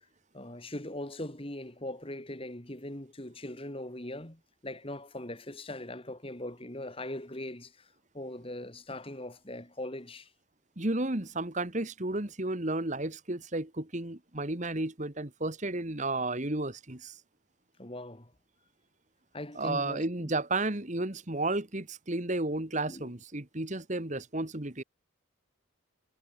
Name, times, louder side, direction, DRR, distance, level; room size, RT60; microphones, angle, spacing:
voice 1, 0.3-7.9 8.1-10.3 17.8-18.3 19.3-20.3 22.9-23.1, left 1 dB, 25° left, 2.4 m, -40 dB
voice 2, 10.8-17.2 19.6-24.8, right 2 dB, 35° right, 1.8 m, -32 dB
head